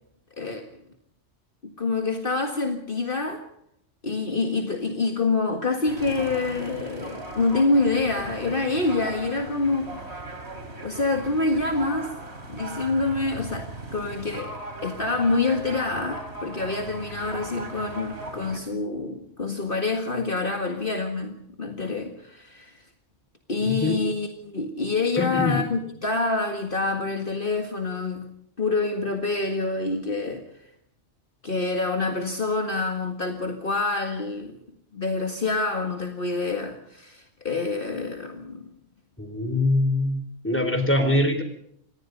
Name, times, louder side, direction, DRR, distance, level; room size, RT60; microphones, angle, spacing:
voice 1, 0.4-0.7 1.6-3.4 4.0-10.0 10.8-12.1 12.5-22.8 23.5-28.3 28.6-30.4 31.4-34.6 34.9-38.7, left 3 dB, 45° left, 5 dB, 2.0 m, -26 dB
sound 1, 5.8-18.6, right 2 dB, 60° right, 3.4 m, -38 dB
voice 2, 23.6-24.0 25.2-25.6 39.2-41.4, left 1 dB, 10° left, 7 dB, 3.9 m, -23 dB
26.5 x 19.0 x 5.3 m, 0.71 s
omnidirectional pair, 1.3 m